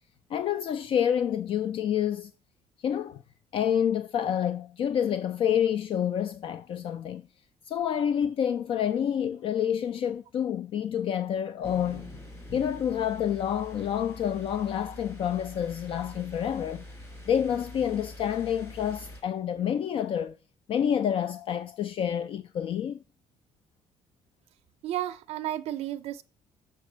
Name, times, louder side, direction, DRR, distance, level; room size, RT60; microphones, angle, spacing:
voice 1, 0.3-2.3 2.8-3.2 3.5-7.2 7.7-12.1 12.5-16.8 17.3-20.4 20.7-23.0, left 9 dB, 50° left, 0.4 m, -28 dB
sound 1, 11.6-19.2, left 1 dB, 20° left, 3.1 m, -45 dB
voice 2, 24.8-26.2, right 12 dB, 60° right, 0.4 m, -32 dB
6.7 x 4.4 x 6.1 m
cardioid pair, 140°, 12 cm